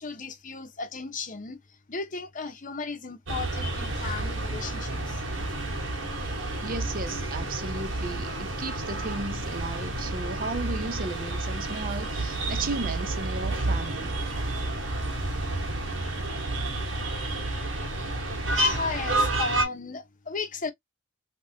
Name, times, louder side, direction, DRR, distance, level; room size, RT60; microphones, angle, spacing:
voice 1, 0.0-1.6 1.9-5.2 18.5-20.7, left 4 dB, 45° left, 0.8 m, -35 dB
sound 1, 3.3-19.7, right 1 dB, 85° right, 1.4 m, -30 dB
voice 2, 6.6-14.1, right 3 dB, 50° right, 0.7 m, -35 dB
3.5 x 2.8 x 2.6 m
head